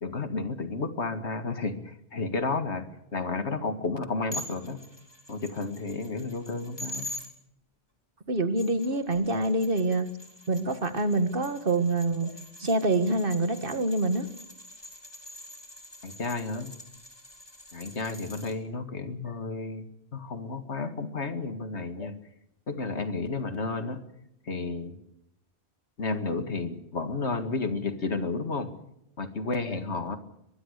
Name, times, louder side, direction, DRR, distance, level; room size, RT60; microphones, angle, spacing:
voice 1, 0.0-2.8 3.1-4.8 5.3-7.1 16.0-16.7 17.7-19.9 20.1-22.2 22.7-24.0 24.5-25.0 26.0-28.7 29.2-30.2, left 3 dB, 90° left, 9 dB, 2.3 m, -32 dB
sound 1, 4.3-7.3 8.4-18.5, left 1 dB, 20° left, 3.9 m, -45 dB
voice 2, 8.3-10.1 10.5-12.3 12.6-14.3, right 2 dB, 55° right, 10 dB, 2.0 m, -26 dB
22.5 x 21.5 x 6.6 m, 0.82 s
omnidirectional pair, 1.1 m